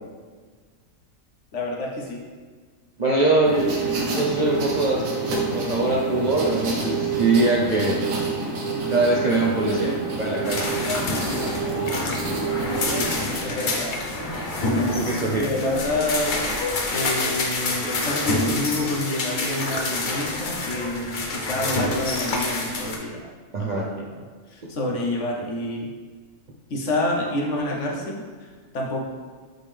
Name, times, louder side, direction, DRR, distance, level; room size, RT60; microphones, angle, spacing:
voice 1, 1.5-2.2 9.7-10.0 12.8-13.1 13.4-14.0 15.2-16.5 16.9-23.3 23.6-24.1 24.5-25.9 26.7-29.0, left 1 dB, 60° left, -1 dB, 1.2 m, -28 dB
voice 2, 3.0-5.1 5.5-8.0 8.9-9.9 10.2-10.7 14.9-15.4 23.5-23.9, right 2 dB, 50° right, -4 dB, 0.5 m, -22 dB
sound 1, 3.5-13.4, right 4 dB, 75° right, 1.4 m, -28 dB
sound 2, 10.4-23.0, left 2 dB, 45° left, 0.7 m, -27 dB
sound 3, 10.7-16.1, left 1 dB, 5° left, 1.5 m, -34 dB
7.7 x 3.6 x 3.4 m, 1.6 s
omnidirectional pair, 1.4 m